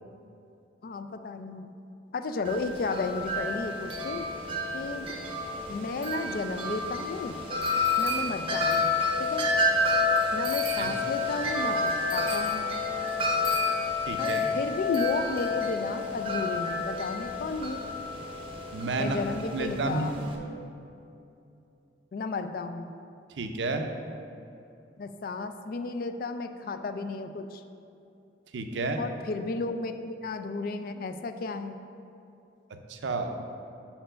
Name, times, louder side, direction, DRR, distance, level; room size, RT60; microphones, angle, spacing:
voice 1, 0.8-1.7 2.1-4.3 4.7-5.1 5.7-7.3 8.0-8.9 9.2-9.5 10.3-11.8 12.1-12.7 14.2-17.8 19.0-20.2 22.1-22.9 25.0-27.6 29.0-31.8, left 3 dB, 50° left, 8 dB, 0.3 m, -33 dB
Wind chime, 2.5-20.4, left 3 dB, 30° right, 0.6 m, -29 dB
voice 2, 14.1-14.5 18.7-19.2 19.5-20.2 23.4-23.9 28.5-29.0 32.9-33.4, right 3 dB, 85° right, 6 dB, 0.5 m, -31 dB
5.6 x 4.5 x 5.0 m, 2.6 s
head